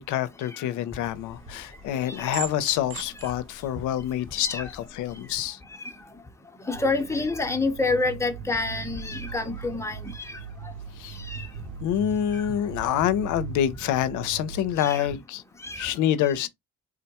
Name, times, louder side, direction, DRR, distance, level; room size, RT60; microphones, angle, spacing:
voice 1, 0.0-5.6 11.0-11.2 11.8-15.4 15.8-16.5, left 10 dB, 85° left, 0.5 m, -27 dB
sound 1, 1.0-5.3, right 5 dB, 45° right, 0.8 m, -42 dB
voice 2, 1.9-2.3 3.2-3.3 4.4-4.7 5.8-5.9 6.6-10.7 11.2-11.5 12.3-12.5 14.8-15.1 15.6-15.9 16.3-16.5, left 3 dB, 10° left, 0.7 m, -29 dB
sound 2, 6.7-15.1, right 6 dB, 85° right, 0.5 m, -40 dB
3.7 x 2.1 x 2.8 m
cardioid pair, 90°, 30 cm